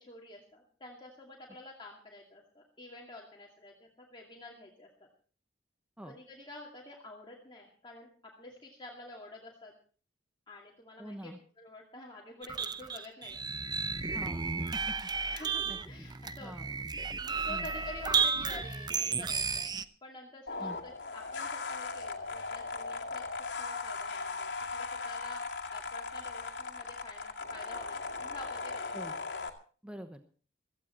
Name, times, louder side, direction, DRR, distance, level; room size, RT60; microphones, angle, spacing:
voice 1, 0.0-5.1 6.0-9.7 10.5-13.5 15.3-16.7 17.2-25.4 25.7-29.0, left 2 dB, 25° left, -1 dB, 2.4 m, -49 dB
voice 2, 11.0-11.4 14.1-14.9 15.6-16.1 16.4-16.7 17.5-17.7 20.6-20.8 28.9-29.1 29.8-30.2, equal, 5° right, 6 dB, 1.1 m, -45 dB
sound 1, 12.4-19.8, right 5 dB, 25° right, 0.7 m, -33 dB
sound 2, 20.5-29.5, left 4 dB, 80° left, 2.2 m, -38 dB
16.5 x 15.0 x 4.4 m, 0.41 s
head